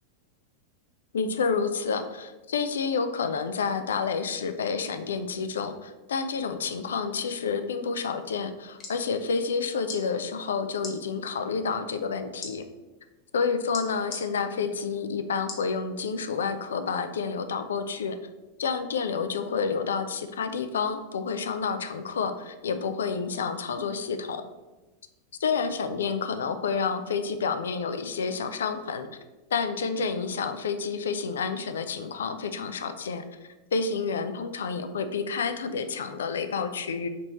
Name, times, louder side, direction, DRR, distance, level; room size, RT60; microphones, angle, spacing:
voice 1, 1.1-12.6 13.3-18.2 18.6-24.4 25.4-29.1 29.5-37.1, left 5 dB, 65° left, 9 dB, 0.3 m, -29 dB
sound 1, 8.5-9.0 9.8-10.0 10.8-11.0 12.4-12.5 13.7-14.2 15.5-15.7 16.3-16.4, left 4 dB, 30° left, 0.8 m, -38 dB
3.4 x 3.1 x 4.1 m, 1.1 s
figure-of-eight pair, 90°, 0 cm